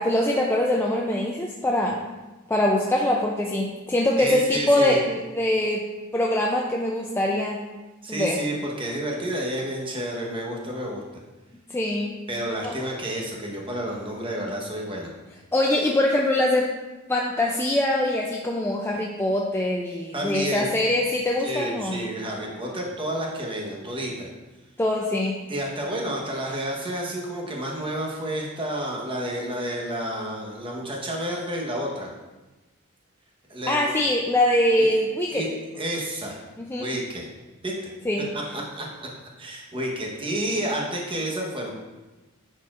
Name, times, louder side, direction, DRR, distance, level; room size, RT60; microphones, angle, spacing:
voice 1, 0.0-2.0 2.5-5.9 6.1-7.6 8.1-8.4 11.7-12.1 12.6-12.8 15.5-16.7 17.1-22.0 24.8-25.4 33.7-35.5 36.6-36.9 38.1-38.3, left 1 dB, 10° left, -1 dB, 0.4 m, -23 dB
voice 2, 4.2-5.0 8.0-11.0 12.3-15.1 20.1-20.8 21.4-24.3 25.5-32.1 33.5-33.8 34.8-34.9 35.3-35.5 35.8-36.4 36.8-37.2 37.6-37.9 38.3-38.9 39.4-41.7, right 1 dB, 25° right, -1 dB, 1.1 m, -30 dB
10.0 x 4.2 x 2.5 m, 1.2 s
head